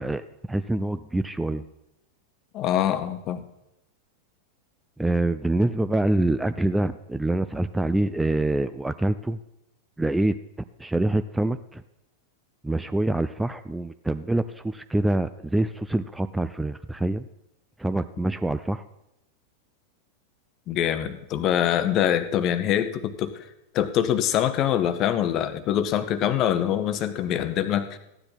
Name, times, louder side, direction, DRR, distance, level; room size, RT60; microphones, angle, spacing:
voice 1, 0.0-1.6 5.0-9.4 10.0-10.4 10.8-11.8 12.6-17.3 17.8-18.8, right 1 dB, 5° right, 12 dB, 0.4 m, -25 dB
voice 2, 2.5-3.4 20.7-23.4 23.7-28.0, left 10 dB, 35° left, 12 dB, 0.9 m, -24 dB
15.0 x 9.8 x 4.1 m, 0.88 s
figure-of-eight pair, 90°, 0 cm